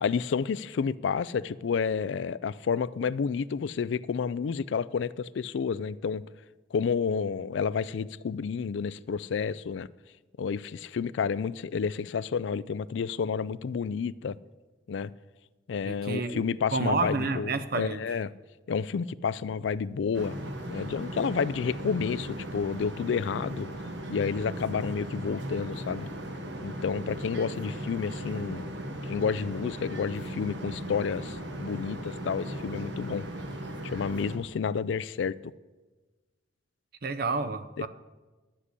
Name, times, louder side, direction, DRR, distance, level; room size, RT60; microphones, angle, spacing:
voice 1, 0.0-6.2 6.7-9.9 10.4-14.4 14.9-15.1 15.7-18.3 18.7-20.4 20.7-23.7 24.1-26.1 26.6-28.7 29.0-33.3 33.9-35.4 37.8-37.9, left 6 dB, 80° left, 0.4 m, -30 dB
voice 2, 15.8-18.0 37.0-37.9, right 3 dB, 55° right, 0.7 m, -30 dB
sound 1, 20.1-34.4, right 1 dB, 70° right, 1.4 m, -37 dB
11.5 x 7.4 x 8.3 m
head